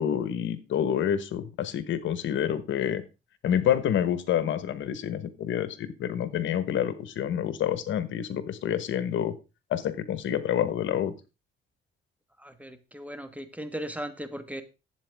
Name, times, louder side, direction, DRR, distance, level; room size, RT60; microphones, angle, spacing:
voice 1, 0.0-3.0 3.4-9.4 9.7-11.1, left 9 dB, 75° left, 13 dB, 1.2 m, -28 dB
voice 2, 12.4-14.6, equal, 5° right, 9 dB, 1.5 m, -37 dB
12.0 x 8.2 x 3.5 m, 0.28 s
cardioid pair, 90°, 20 cm